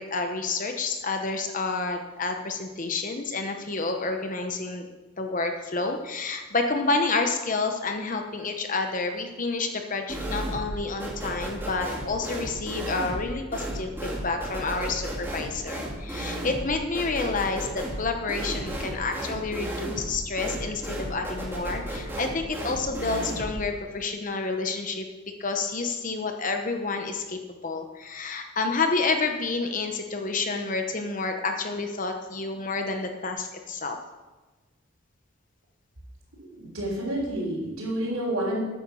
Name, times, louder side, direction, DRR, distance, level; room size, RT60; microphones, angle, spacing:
voice 1, 0.0-4.8 5.2-25.1 25.4-34.0, left 3 dB, 40° left, 5 dB, 1.0 m, -29 dB
sound 1, 10.1-10.7 11.0-23.6, right 1 dB, 10° right, 2.3 m, -34 dB
voice 2, 36.3-38.6, right 1 dB, 90° right, -7 dB, 3.8 m, -29 dB
9.4 x 9.0 x 6.9 m, 1.2 s
head